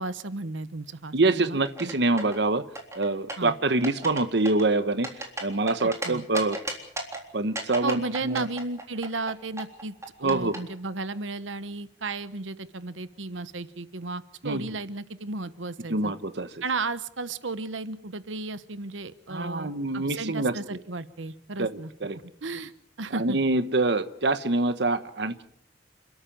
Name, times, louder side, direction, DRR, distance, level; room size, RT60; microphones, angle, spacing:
voice 1, 0.0-1.6 3.4-3.5 5.8-6.2 7.8-9.9 10.2-16.1 16.6-21.9 22.4-22.7 23.0-23.4, right 3 dB, 85° right, 14 dB, 1.2 m, -34 dB
voice 2, 1.1-2.6 2.9-5.1 5.4-6.6 7.3-8.5 10.2-10.6 14.4-14.6 15.9-16.5 19.3-20.5 21.6-21.7 22.0-22.2 23.1-25.4, right 2 dB, 60° right, 11 dB, 1.1 m, -25 dB
sound 1, 1.6-2.4 2.8-3.5 3.8-4.2 4.5-6.1 6.3-7.2 7.6-10.6, right 2 dB, 15° right, 3.7 m, -34 dB
29.5 x 13.5 x 9.0 m, 0.68 s
head